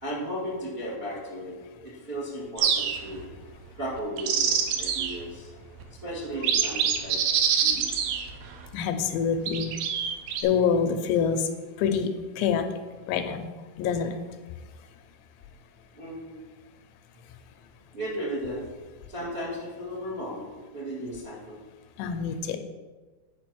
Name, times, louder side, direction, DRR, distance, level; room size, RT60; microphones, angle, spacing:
voice 1, 0.0-3.3 3.8-5.5 6.0-7.2 7.6-8.2 15.9-16.4 17.9-18.7 19.1-20.5 20.7-21.6, equal, 55° right, -5 dB, 0.6 m, -35 dB
sound 1, 2.6-3.2 4.0-5.2 5.8-5.9 6.3-8.7 9.5-10.4, right 7 dB, 80° right, 2.0 m, -26 dB
voice 2, 8.7-9.7 10.4-11.5 11.8-12.1 12.4-12.6 13.1-13.5 13.8-14.1 22.0-22.6, left 7 dB, 90° left, 7 dB, 3.0 m, -25 dB
10.0 x 4.5 x 6.1 m, 1.3 s
omnidirectional pair, 5.0 m